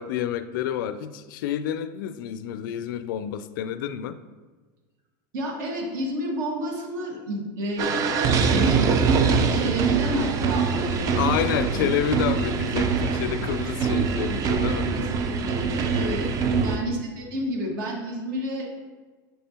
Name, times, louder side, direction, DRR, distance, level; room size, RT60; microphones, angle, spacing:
voice 1, 0.0-4.2 11.1-14.9 16.5-16.8, left 10 dB, 75° left, 12 dB, 0.4 m, -29 dB
voice 2, 5.3-8.0 8.4-11.9 14.8-16.3 16.6-18.7, equal, 70° right, 0 dB, 1.7 m, -31 dB
sound 1, 7.8-16.8, right 5 dB, 30° right, 0.5 m, -23 dB
7.1 x 5.4 x 2.9 m, 1.3 s
supercardioid pair, 140°, 11 cm